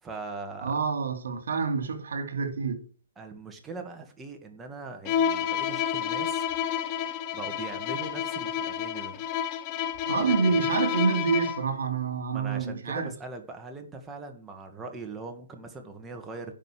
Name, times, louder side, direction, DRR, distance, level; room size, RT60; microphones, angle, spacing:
voice 1, 0.0-0.8 3.2-6.5 7.3-9.2 10.2-10.7 12.3-16.5, right 3 dB, 10° right, 1.8 m, -41 dB
voice 2, 0.6-2.9 10.1-13.1, right 5 dB, 75° right, 2.7 m, -27 dB
Bowed string instrument, 5.0-11.7, left 9 dB, 25° left, 0.9 m, -30 dB
10.5 x 5.3 x 7.8 m
hypercardioid pair, 160°, 0 cm